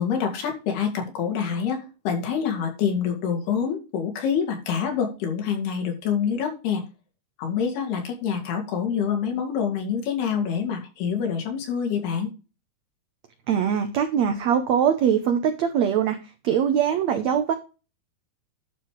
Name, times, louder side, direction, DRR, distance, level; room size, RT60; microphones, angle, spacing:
voice 1, 0.0-6.8 7.4-12.3, left 7 dB, 85° left, 3 dB, 4.4 m, -26 dB
voice 2, 13.5-17.5, right 8 dB, 85° right, 8 dB, 1.5 m, -22 dB
11.5 x 4.8 x 5.1 m, 0.31 s
omnidirectional pair, 4.4 m